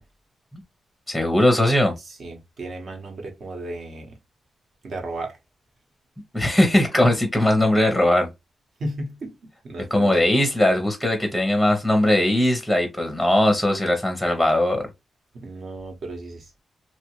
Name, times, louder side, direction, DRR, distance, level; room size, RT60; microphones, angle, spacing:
voice 1, 1.1-1.9 6.3-8.3 9.9-14.8, left 1 dB, 5° right, 0.7 m, -19 dB
voice 2, 2.0-4.2 4.8-5.4 7.0-7.2 8.8-9.3 9.6-10.2 15.3-16.6, right 1 dB, 60° right, 1.1 m, -34 dB
2.8 x 2.4 x 2.9 m
wide cardioid pair, 120°, 0 cm